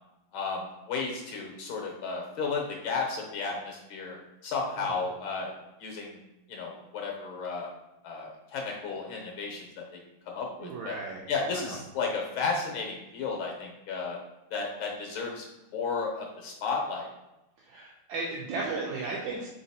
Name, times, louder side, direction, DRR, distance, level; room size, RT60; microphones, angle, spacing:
voice 1, 0.3-4.2 4.4-5.5 5.8-6.2 6.5-7.7 8.0-10.0 10.3-11.0 11.3-14.2 14.5-17.1, left 4 dB, 85° left, 0 dB, 1.7 m, -33 dB
voice 2, 10.6-11.2 11.5-11.7 17.7-19.5, right 3 dB, 80° right, -3 dB, 1.4 m, -35 dB
3.9 x 3.9 x 2.8 m, 0.93 s
omnidirectional pair, 2.2 m